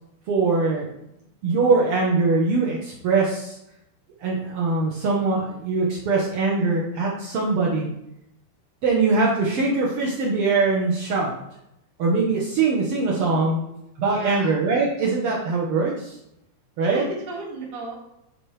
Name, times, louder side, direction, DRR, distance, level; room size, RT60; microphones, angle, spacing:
voice 1, 0.3-0.9 1.4-3.6 4.2-7.9 8.8-11.3 12.0-13.6 14.0-16.2 16.8-17.1, right 3 dB, 80° right, -4 dB, 1.2 m, -22 dB
voice 2, 13.0-13.8 14.1-14.6 16.8-17.9, right 2 dB, 50° right, -2 dB, 1.2 m, -35 dB
10.5 x 4.8 x 3.3 m, 0.84 s
omnidirectional pair, 4.2 m